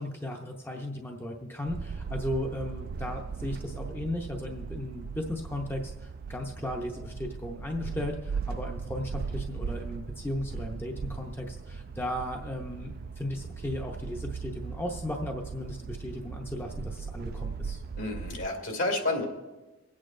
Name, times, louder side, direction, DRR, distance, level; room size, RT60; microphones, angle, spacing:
voice 1, 0.0-17.8, left 1 dB, 10° left, 1 dB, 0.6 m, -36 dB
sound 1, 1.7-18.5, right 5 dB, 45° right, 0.3 m, -38 dB
voice 2, 17.9-19.3, left 2 dB, 70° left, 3 dB, 2.3 m, -30 dB
25.0 x 8.6 x 2.5 m, 1.1 s
head